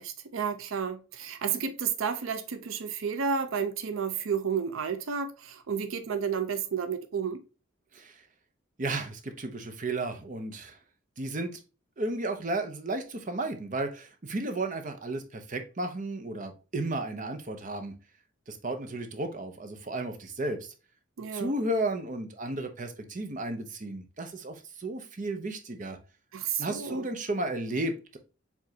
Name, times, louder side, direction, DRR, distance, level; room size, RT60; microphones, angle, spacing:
voice 1, 0.0-7.4 21.2-21.5 26.3-27.1, right 6 dB, 80° right, 0.5 m, -31 dB
voice 2, 8.8-10.8 11.2-11.6 12.0-17.9 18.5-20.7 21.3-26.0 26.6-28.2, right 2 dB, 40° right, 0.7 m, -33 dB
4.9 x 3.5 x 2.7 m
head